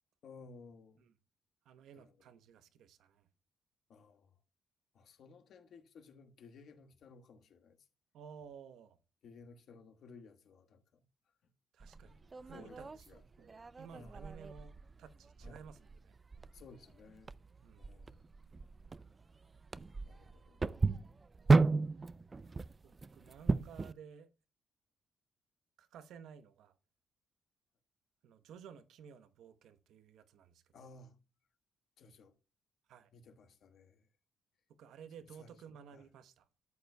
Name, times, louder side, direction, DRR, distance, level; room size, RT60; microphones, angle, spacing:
voice 1, 0.2-1.0 1.9-2.3 3.9-4.3 4.9-7.8 9.2-11.0 12.0-13.2 13.9-14.2 15.4-15.6 16.5-17.3 17.8-18.2 20.0-20.6 30.7-31.2 32.0-32.3 33.1-34.1 35.4-36.1, left 4 dB, 65° left, 1.3 m, -57 dB
voice 2, 1.6-3.3 8.1-9.0 11.7-12.8 13.1-14.7 15.0-16.1 17.6-17.9 22.8-24.3 25.8-26.7 28.2-30.9 32.9-33.1 34.8-36.5, right 7 dB, 80° right, 0.9 m, -55 dB
sound 1, 11.8-23.9, right 3 dB, 30° right, 0.4 m, -35 dB
13.0 x 7.9 x 2.2 m
cardioid pair, 90°, 0 cm